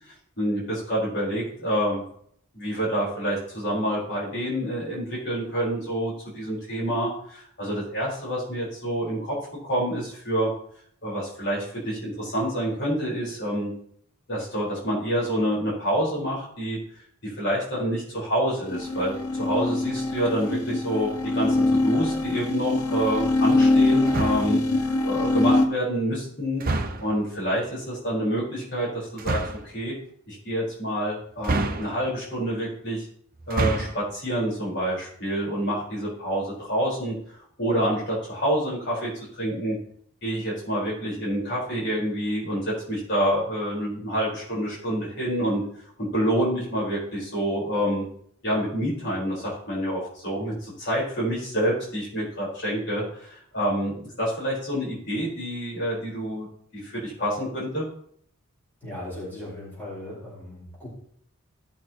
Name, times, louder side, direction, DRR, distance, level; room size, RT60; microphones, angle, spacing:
voice 1, 0.4-2.0 2.5-9.4 9.6-10.5 11.0-13.7 14.3-16.8 17.2-29.9 30.3-33.1 33.5-39.8 40.2-45.6 46.0-48.1 48.4-56.5 56.7-57.9, equal, 50° left, -5 dB, 4.5 m, -27 dB
sound 1, 18.6-25.7, left 2 dB, 85° left, 1.1 m, -23 dB
sound 2, 24.1-24.6 26.6-27.2 29.2-29.7 31.4-32.2 33.4-34.1, right 2 dB, 40° right, 0.8 m, -28 dB
voice 2, 58.8-60.9, left 1 dB, 10° left, -8 dB, 4.7 m, -38 dB
17.0 x 6.6 x 3.0 m, 0.63 s
head